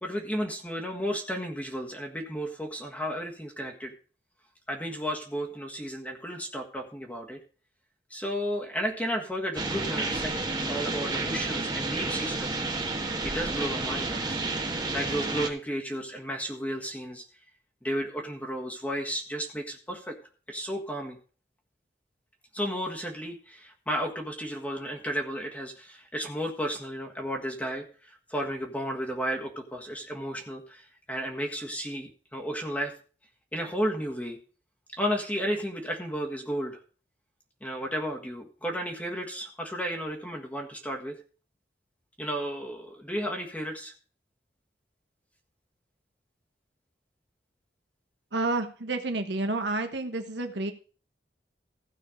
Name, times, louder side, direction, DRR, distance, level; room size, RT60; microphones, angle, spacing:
voice 1, 0.0-3.9 4.7-7.4 8.1-12.6 13.2-17.2 17.8-20.2 20.5-21.2 22.5-30.8 31.1-32.9 33.5-34.4 34.9-36.8 37.6-41.2 42.2-43.9, equal, 10° left, 1 dB, 1.6 m, -33 dB
sound 1, 9.5-15.5, right 3 dB, 25° right, 1.5 m, -30 dB
voice 2, 48.3-50.7, right 2 dB, 85° right, 6 dB, 1.2 m, -30 dB
16.0 x 5.6 x 5.1 m, 0.38 s
head